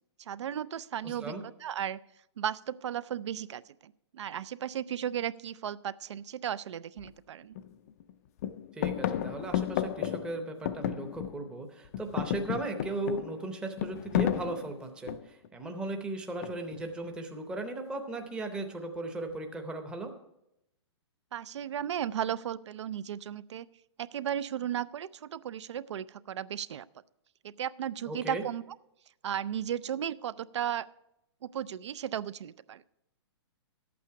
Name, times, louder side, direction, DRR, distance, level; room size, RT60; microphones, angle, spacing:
voice 1, 0.2-1.3 1.6-2.0 2.4-7.6 21.3-23.7 24.0-26.9 27.4-28.6 29.2-30.9 31.4-32.8, right 10 dB, 80° right, 19 dB, 0.5 m, -35 dB
voice 2, 1.0-1.4 8.7-20.1 28.1-28.4, right 2 dB, 5° right, 5 dB, 0.7 m, -37 dB
sound 1, 7.0-7.1 7.5-8.1 8.4-11.6 11.8-15.5 16.4-16.9, left 11 dB, 35° left, 0.4 m, -33 dB
11.5 x 8.6 x 4.7 m, 0.83 s
hypercardioid pair, 160°, 15 cm